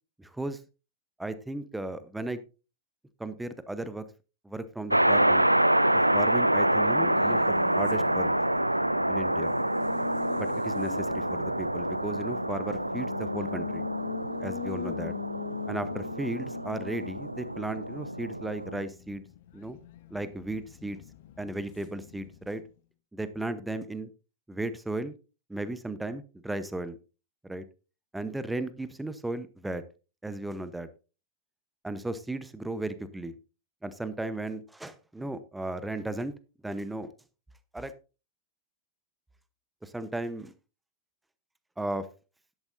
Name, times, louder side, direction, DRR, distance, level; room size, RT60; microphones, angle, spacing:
voice 1, 0.2-0.6 1.2-2.4 3.2-4.0 4.4-5.5 5.9-8.3 9.1-9.5 10.4-13.8 14.4-15.1 15.7-19.2 19.5-19.8 20.1-21.0 21.4-22.6 23.1-24.1 24.5-25.1 25.5-27.0 27.4-27.6 28.1-29.8 30.2-30.9 31.8-33.3 33.8-36.3 36.6-37.1 37.7-37.9 39.8-40.5 41.8-42.1, right 2 dB, 5° right, 13 dB, 0.9 m, -35 dB
sound 1, 4.9-18.8, right 1 dB, 85° right, 0.4 m, -27 dB
Race car auto racing, 6.5-22.7, left 11 dB, 55° left, 0.9 m, -43 dB
12.5 x 11.0 x 2.6 m, 0.33 s
figure-of-eight pair, 90°, 0 cm